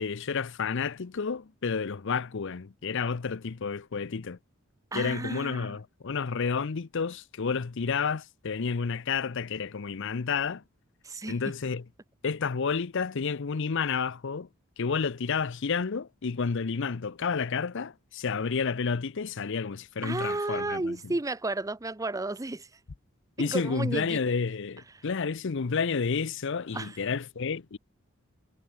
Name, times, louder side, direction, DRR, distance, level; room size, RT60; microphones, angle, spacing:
voice 1, 0.0-4.4 4.9-10.6 11.3-11.8 12.2-14.5 14.8-21.0 23.4-27.8, left 5 dB, 60° left, 0.6 m, -30 dB
voice 2, 4.9-5.8 11.0-11.4 20.0-22.7 23.4-24.2 24.9-25.0 26.7-27.0, right 2 dB, 15° right, 0.6 m, -32 dB
head